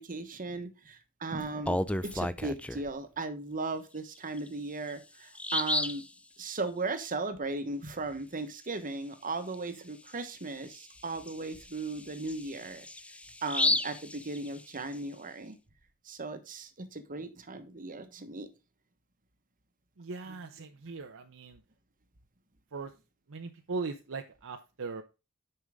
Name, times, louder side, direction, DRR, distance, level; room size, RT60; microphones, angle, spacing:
voice 1, 0.0-6.0 6.4-12.8 13.4-15.6 16.1-18.5, right 3 dB, 40° right, 9 dB, 1.2 m, -37 dB
Bird vocalization bird call bird song, 1.4-2.9 4.4-4.5 4.9-5.0 5.4-6.1 9.5-9.7 10.1-10.2 10.7-14.9, left 1 dB, 5° left, 0.4 m, -33 dB
voice 2, 20.0-21.6 22.7-22.9 23.3-25.0, right 4 dB, 60° right, 4 dB, 0.8 m, -39 dB
9.7 x 5.6 x 3.6 m, 0.28 s
head